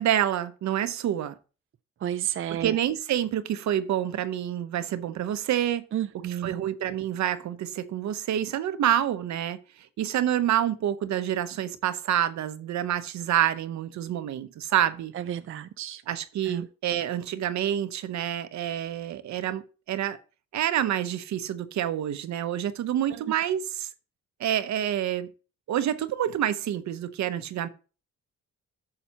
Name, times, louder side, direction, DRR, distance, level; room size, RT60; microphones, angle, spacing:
voice 1, 0.0-1.3 2.5-5.8 6.1-9.6 10.0-15.1 16.1-20.2 20.5-23.9 24.4-25.3 25.7-27.7, right 11 dB, 65° right, 0.8 m, -27 dB
voice 2, 2.0-2.7 5.9-6.5 15.2-16.0 16.5-16.7, right 11 dB, 45° right, 0.5 m, -31 dB
11.0 x 6.9 x 2.9 m
cardioid pair, 90°, 30 cm